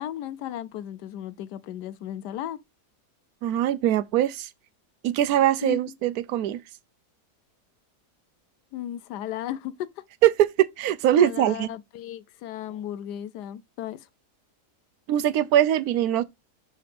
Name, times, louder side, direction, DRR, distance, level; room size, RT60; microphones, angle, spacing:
voice 1, 0.0-2.6 5.6-5.9 8.7-9.9 11.1-14.1, left 11 dB, 90° left, 1.2 m, -35 dB
voice 2, 3.4-4.5 5.0-6.6 10.2-11.7 15.1-16.2, right 11 dB, 70° right, 1.1 m, -22 dB
6.6 x 3.9 x 5.1 m
omnidirectional pair, 1.7 m